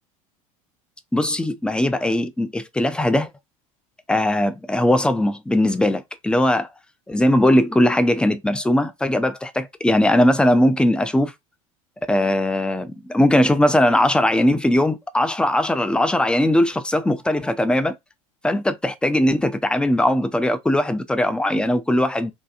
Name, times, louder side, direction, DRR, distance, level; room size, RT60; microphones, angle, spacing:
voice 1, 1.1-3.3 4.1-6.7 7.1-11.3 12.1-17.9 18.4-22.3, left 1 dB, 5° left, 0.3 m, -19 dB
2.8 x 2.3 x 2.4 m
hypercardioid pair, 75°, 18 cm